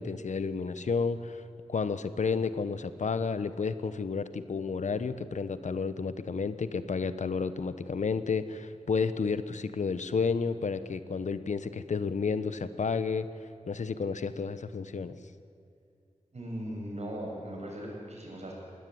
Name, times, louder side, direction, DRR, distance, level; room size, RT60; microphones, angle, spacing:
voice 1, 0.0-1.4 1.7-13.3 13.7-15.2, left 5 dB, 85° left, 13 dB, 1.0 m, -31 dB
voice 2, 16.3-18.5, equal, 65° right, -1 dB, 7.4 m, -38 dB
23.0 x 17.5 x 9.4 m, 2.5 s
wide cardioid pair, 90°, 12 cm